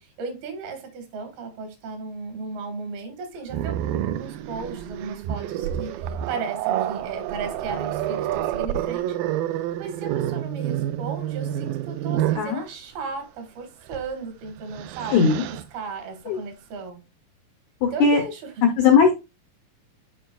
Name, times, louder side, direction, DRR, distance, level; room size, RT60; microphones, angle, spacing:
voice 1, 0.0-9.2 9.8-15.3 15.7-17.0 17.8-18.6, right 4 dB, 75° right, 3.4 m, -35 dB
Growling, 3.5-12.5 13.9-14.1 14.5-15.6, right 11 dB, 90° right, 1.9 m, -28 dB
voice 2, 15.1-15.4 16.3-16.4 17.8-18.2 18.8-19.1, left 5 dB, 80° left, 1.7 m, -18 dB
11.0 x 4.7 x 2.3 m
omnidirectional pair, 4.5 m